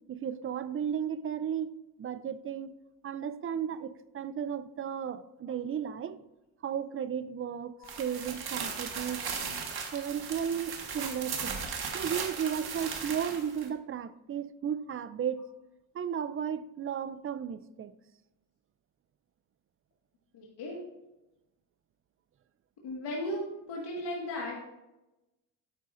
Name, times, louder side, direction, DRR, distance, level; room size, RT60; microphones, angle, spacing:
voice 1, 0.1-1.7 2.0-2.7 3.0-6.2 6.6-9.2 9.9-11.6 11.9-15.4 15.9-17.9, right 8 dB, 30° right, 0.4 m, -34 dB
sound 1, 7.8-13.7, right 5 dB, 55° right, 1.6 m, -37 dB
voice 2, 9.2-9.6 12.6-12.7 20.3-20.8 22.8-24.6, left 1 dB, 65° left, 1.8 m, -37 dB
9.7 x 8.4 x 2.5 m
cardioid pair, 85°, 44 cm